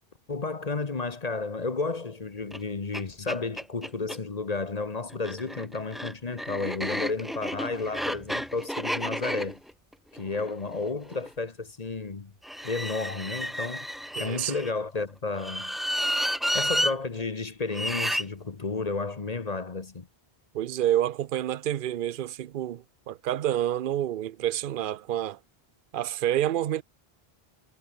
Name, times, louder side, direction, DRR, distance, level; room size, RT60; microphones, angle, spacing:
voice 1, 0.3-9.6 10.1-12.3 12.6-13.9 14.2-15.7 16.5-20.1, left 3 dB, 40° left, 1.2 m, -32 dB
sound 1, 2.5-2.6 2.9-3.0 3.3-4.2 5.1-11.3 12.4-14.7 15.3-16.9 17.7-18.2, equal, ahead, 0.6 m, -31 dB
sound 2, 7.9-9.8 12.6-14.6, equal, 20° left, 7.1 m, -57 dB
voice 2, 14.2-14.6 20.5-25.4 25.9-26.8, right 12 dB, 60° right, 0.7 m, -28 dB
omnidirectional pair, 1.0 m